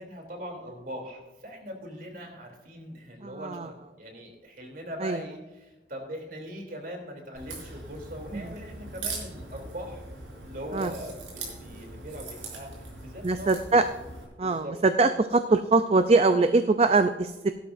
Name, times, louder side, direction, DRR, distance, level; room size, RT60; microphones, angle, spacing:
voice 1, 0.0-10.0 10.4-13.5 14.4-14.7, equal, 50° right, 2 dB, 3.1 m, -41 dB
voice 2, 3.2-3.7 5.0-5.2 8.3-8.4 10.7-10.9 13.2-13.8 14.4-17.5, right 3 dB, 35° right, 9 dB, 0.4 m, -22 dB
Crack, 7.3-14.2, right 3 dB, 85° right, 4.8 m, -41 dB
16.5 x 12.5 x 2.6 m, 1.1 s
head